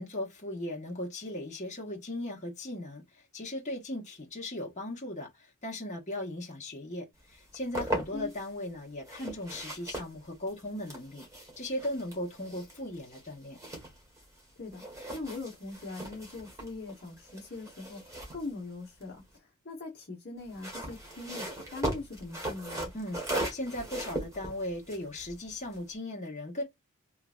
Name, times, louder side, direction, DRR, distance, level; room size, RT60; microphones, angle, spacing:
voice 1, 0.0-11.2 11.6-13.6 22.9-26.6, left 1 dB, 35° left, 1.4 m, -38 dB
sound 1, 7.3-8.5 9.0-14.4 14.7-19.4 20.4-25.9, right 1 dB, 15° right, 1.5 m, -39 dB
voice 2, 15.1-22.9, left 3 dB, 50° left, 1.2 m, -41 dB
3.3 x 2.8 x 2.5 m
head